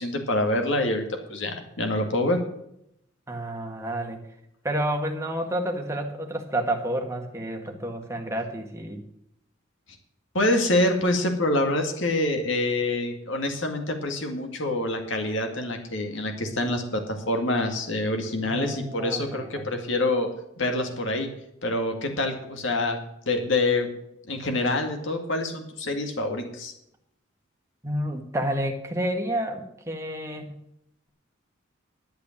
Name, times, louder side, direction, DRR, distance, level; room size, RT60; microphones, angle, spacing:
voice 1, 0.0-2.4 10.3-20.3 20.6-21.3 21.6-23.0 23.3-23.9 24.3-26.7, left 2 dB, 65° left, 4 dB, 2.1 m, -26 dB
voice 2, 3.3-4.2 4.6-9.0 18.4-19.7 27.8-30.6, right 1 dB, 15° right, 2 dB, 1.8 m, -30 dB
11.5 x 8.4 x 7.2 m, 0.77 s
head